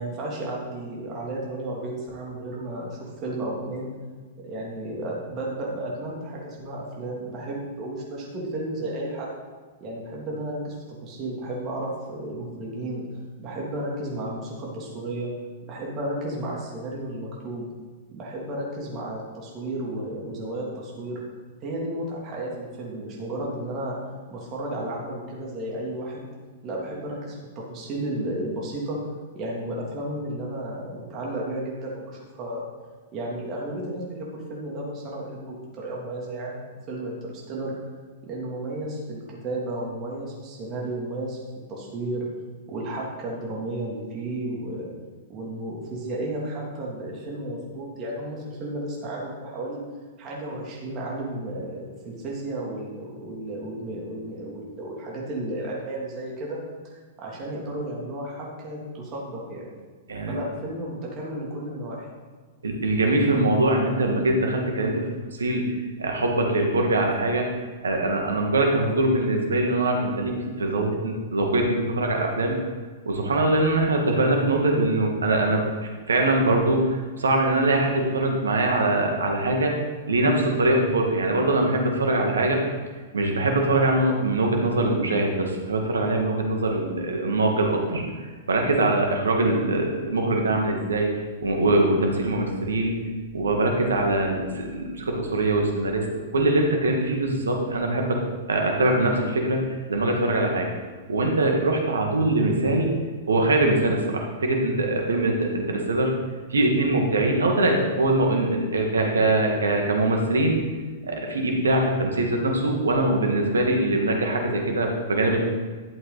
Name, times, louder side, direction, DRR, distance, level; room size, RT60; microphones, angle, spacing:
voice 1, 0.0-3.9 4.4-9.3 9.8-13.0 13.4-15.3 15.6-17.7 18.1-21.2 21.6-24.0 24.3-26.3 26.6-29.0 29.3-32.7 33.1-37.7 38.2-41.4 41.7-42.3 42.7-44.9 45.3-49.8 50.2-59.7 60.3-62.1, right 1 dB, 35° right, -3 dB, 2.8 m, -33 dB
voice 2, 62.6-65.1 65.4-65.7 66.0-67.5 67.8-72.6 73.1-79.7 80.1-82.6 83.1-88.0 88.5-91.1 91.4-92.9 93.3-96.1 96.3-98.2 98.5-100.7 101.1-102.9 103.3-106.1 106.5-110.6 111.0-115.4, right 2 dB, 80° right, 1 dB, 2.0 m, -23 dB
12.0 x 8.0 x 4.1 m, 1.4 s
hypercardioid pair, 105°, 0 cm